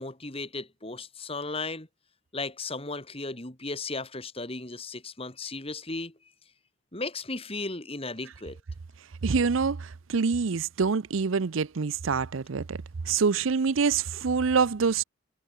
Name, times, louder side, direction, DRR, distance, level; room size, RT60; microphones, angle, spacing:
voice 1, 0.0-1.9 2.3-6.1 6.9-8.6, left 3 dB, 30° left, 3.0 m, -35 dB
voice 2, 9.2-12.8 13.1-15.0, right 5 dB, 75° right, 0.6 m, -26 dB
head